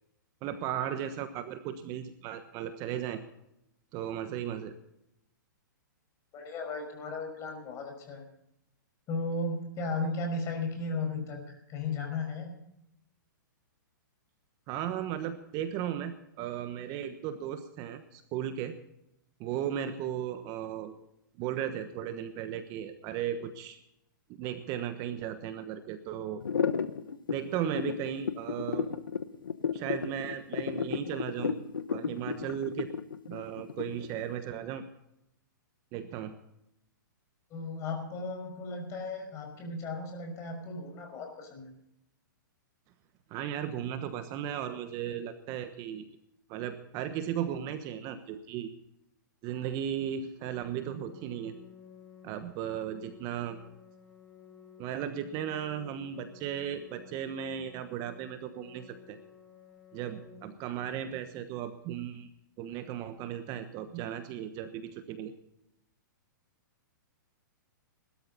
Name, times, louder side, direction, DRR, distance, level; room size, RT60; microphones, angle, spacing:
voice 1, 0.4-3.2 3.9-4.7 14.7-18.8 19.4-20.9 21.4-23.8 24.3-26.4 27.3-28.9 29.7-31.6 31.9-32.9 33.3-34.9 35.9-36.3 43.3-46.2 46.5-48.7 49.4-51.5 52.2-53.6 54.8-59.2 59.9-62.3 62.6-65.3, right 10 dB, 35° right, 9 dB, 1.2 m, -36 dB
voice 2, 6.3-8.2 9.1-12.5 37.5-41.7, left 3 dB, 30° left, 4 dB, 5.4 m, -35 dB
sound 1, 26.4-34.2, left 6 dB, 90° left, 1.1 m, -32 dB
Organ, 50.3-61.3, left 6 dB, 10° left, 7.0 m, -54 dB
20.0 x 13.0 x 4.1 m, 0.80 s
hypercardioid pair, 135°, 11 cm